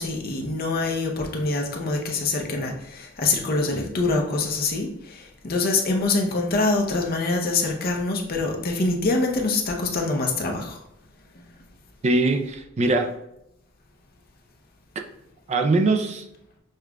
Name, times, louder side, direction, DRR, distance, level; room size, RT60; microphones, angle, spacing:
voice 1, 0.0-10.8 11.3-11.4, left 3 dB, 45° left, 1 dB, 0.6 m, -25 dB
voice 2, 12.0-13.2 15.0-15.1 15.5-16.3, right 2 dB, 35° right, 5 dB, 0.3 m, -22 dB
6.4 x 2.4 x 2.2 m, 0.82 s
head